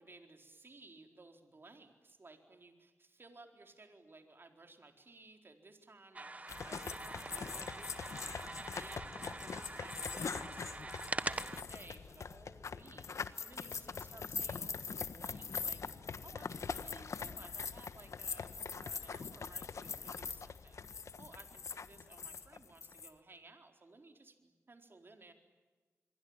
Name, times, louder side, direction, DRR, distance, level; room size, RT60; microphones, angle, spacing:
voice 1, 0.0-15.8 16.2-20.8 21.2-25.3, right 3 dB, 45° right, 5 dB, 4.2 m, -58 dB
sound 1, 6.1-11.6, right 2 dB, 30° right, 1.2 m, -43 dB
sound 2, 6.5-23.1, left 5 dB, 75° left, 1.4 m, -43 dB
28.0 x 23.5 x 8.9 m, 1.3 s
cardioid pair, 65°, 5 cm